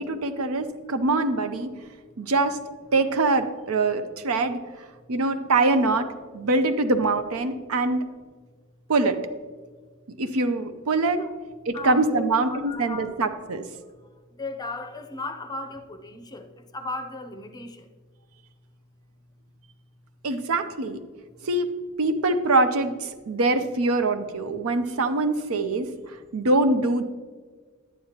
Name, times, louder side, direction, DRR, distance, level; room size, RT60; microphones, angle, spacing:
voice 1, 0.0-1.7 2.2-2.6 2.9-4.6 5.1-6.1 6.3-8.0 8.9-9.2 10.2-11.2 11.7-13.6 20.2-21.0 21.4-21.7 22.0-25.9 26.3-27.0, right 2 dB, 75° right, 9 dB, 0.6 m, -23 dB
voice 2, 11.7-13.3 13.8-13.9 14.4-17.9, left 3 dB, 20° left, 7 dB, 0.6 m, -36 dB
10.5 x 9.3 x 2.9 m, 1.5 s
head